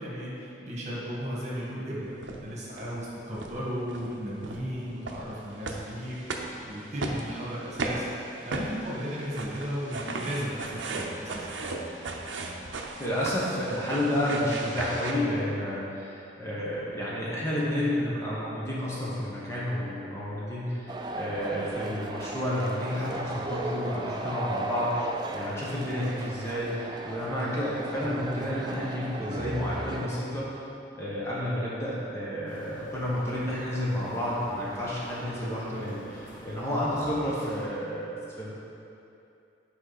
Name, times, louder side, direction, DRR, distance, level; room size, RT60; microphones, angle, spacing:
voice 1, 0.0-8.1 8.4-11.5, equal, 40° right, -6 dB, 1.5 m, -35 dB
sound 1, 2.2-2.4 2.8-3.0 3.3-3.5 3.9-4.1 4.4-15.1, right 3 dB, 90° right, 0.7 m, -36 dB
voice 2, 13.0-30.5 30.9-38.5, left 1 dB, 15° left, -8 dB, 1.1 m, -30 dB
sound 2, 20.9-30.1, right 2 dB, 25° right, 0.4 m, -36 dB
sound 3, 32.5-37.7, equal, 50° left, 1.4 m, -46 dB
8.7 x 5.0 x 4.1 m, 2.7 s
head